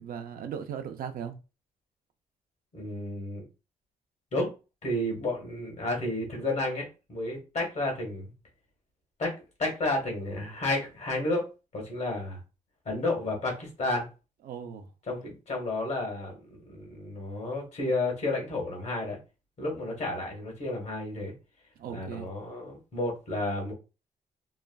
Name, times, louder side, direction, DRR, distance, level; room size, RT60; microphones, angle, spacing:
voice 1, 0.0-1.3 14.4-14.9 21.8-22.3, right 8 dB, 75° right, 0.5 m, -37 dB
voice 2, 2.7-3.4 4.3-4.5 4.8-8.3 9.2-9.3 9.6-12.4 12.8-14.1 15.1-19.2 19.6-21.3 21.9-23.7, left 2 dB, 50° left, 1.4 m, -31 dB
3.1 x 2.5 x 2.3 m
cardioid pair, 125°, 15 cm